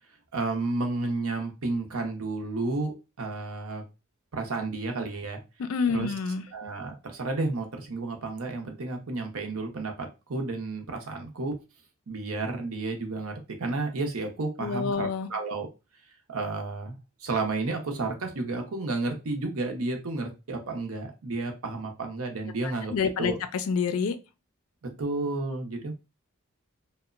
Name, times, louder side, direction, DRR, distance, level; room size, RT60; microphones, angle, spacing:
voice 1, 0.3-3.8 4.3-5.4 5.9-6.1 6.5-11.5 12.1-15.7 16.3-23.4 24.8-26.0, right 3 dB, 75° right, 0.7 m, -32 dB
voice 2, 5.6-6.5 14.6-15.3 22.9-24.2, left 5 dB, 75° left, 0.4 m, -27 dB
2.9 x 2.1 x 2.4 m
head